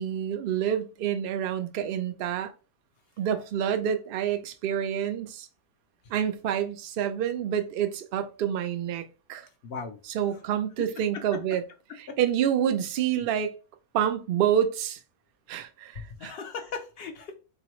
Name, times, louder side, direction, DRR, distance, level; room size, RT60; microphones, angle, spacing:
voice 1, 0.0-2.5 3.2-5.5 6.1-9.0 9.3-9.5 10.1-11.6 12.2-13.5 13.9-15.0 15.5-16.3, right 9 dB, 85° right, 0.5 m, -28 dB
voice 2, 9.6-10.0 10.3-10.4 11.0-11.2 11.9-12.2 16.0-17.3, left 5 dB, 70° left, 0.5 m, -38 dB
3.7 x 2.8 x 3.0 m
omnidirectional pair, 1.6 m